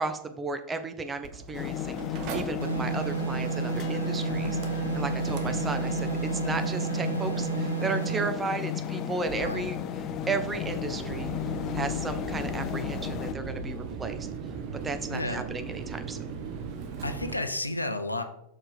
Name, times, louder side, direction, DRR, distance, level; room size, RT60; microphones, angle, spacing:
voice 1, 0.0-9.8 10.3-11.4 11.7-14.3 14.8-16.2, right 3 dB, 15° right, 8 dB, 0.7 m, -34 dB
Mechanical fan, 1.2-17.3, right 4 dB, 40° right, 1.0 m, -39 dB
sound 1, 1.5-13.3, left 10 dB, 35° left, 0.4 m, -34 dB
sound 2, 2.6-8.4, right 7 dB, 75° right, 0.4 m, -31 dB
voice 2, 15.1-15.5 17.0-18.2, left 2 dB, 85° left, 8 dB, 0.6 m, -32 dB
6.0 x 4.6 x 4.8 m, 0.75 s
figure-of-eight pair, 90°, 0 cm